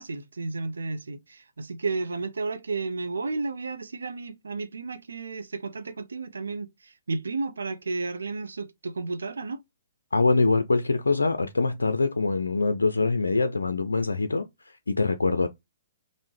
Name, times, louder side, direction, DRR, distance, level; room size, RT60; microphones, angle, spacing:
voice 1, 0.0-9.6, right 3 dB, 80° right, 0.5 m, -32 dB
voice 2, 10.1-14.5 14.9-15.5, left 3 dB, 85° left, 0.4 m, -24 dB
5.3 x 2.0 x 3.1 m
hypercardioid pair, 130°, 0 cm